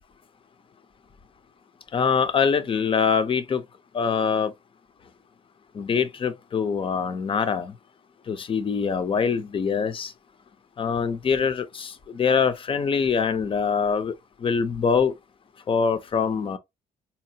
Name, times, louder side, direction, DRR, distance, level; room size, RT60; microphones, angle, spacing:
voice 1, 1.9-3.6 3.9-4.5 5.8-7.7 8.3-10.1 10.8-14.1 14.4-15.1 15.7-16.6, left 6 dB, 30° left, 0.6 m, -24 dB
3.9 x 2.9 x 2.7 m
cardioid pair, 110°, 17 cm